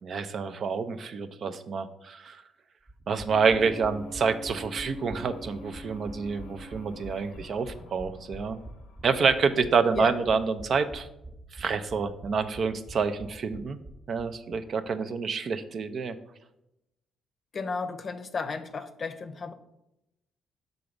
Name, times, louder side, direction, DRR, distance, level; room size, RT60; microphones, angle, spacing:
voice 1, 0.0-2.4 3.1-8.6 9.0-11.1 11.5-13.8 14.1-16.2, right 5 dB, 55° right, 10 dB, 0.5 m, -28 dB
sound 1, 2.9-14.6 14.9-15.0 15.2-15.3, right 1 dB, 25° right, 0.9 m, -46 dB
sound 2, 3.3-9.7, left 1 dB, 85° left, 0.7 m, -46 dB
voice 2, 17.5-19.5, left 4 dB, 40° left, 10 dB, 0.6 m, -33 dB
5.8 x 4.0 x 5.1 m, 0.88 s
cardioid pair, 90°, 0 cm